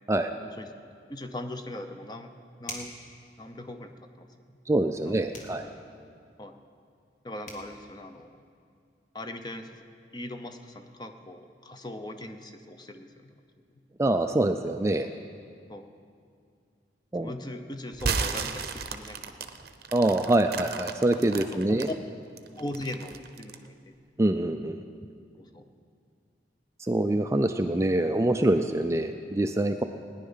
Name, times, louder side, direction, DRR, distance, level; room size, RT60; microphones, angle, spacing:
voice 1, 0.3-0.7 1.1-2.3 2.6-2.9 3.4-3.9 4.2-4.3 5.1-5.5 6.4-6.6 7.2-8.4 9.1-9.8 10.1-13.4 15.7-15.9 17.2-19.6 21.5-21.9 22.5-24.0 25.4-25.7, left 1 dB, 25° left, 6 dB, 0.7 m, -40 dB
sound 1, 2.7-3.1 5.3-5.6 7.1-7.2 7.5-7.7, left 2 dB, 45° left, 1.9 m, -40 dB
voice 2, 4.7-5.7 14.0-15.1 17.1-17.3 19.9-21.9 24.2-24.8 26.8-29.8, right 1 dB, 15° right, 6 dB, 0.3 m, -25 dB
sound 2, 17.9-21.9 22.4-23.7, right 5 dB, 55° right, 0.7 m, -33 dB
18.0 x 10.0 x 5.6 m, 2.3 s
head